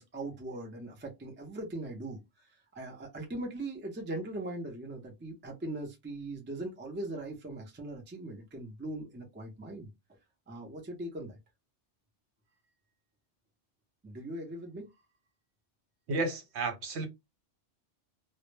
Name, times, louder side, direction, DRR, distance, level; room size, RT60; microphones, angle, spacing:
voice 1, 0.0-2.2 2.7-9.9 10.5-11.4 14.0-14.9, right 1 dB, 20° right, 0.3 m, -40 dB
voice 2, 16.1-17.1, right 3 dB, 70° right, 1.0 m, -32 dB
2.1 x 2.0 x 3.1 m
omnidirectional pair, 1.2 m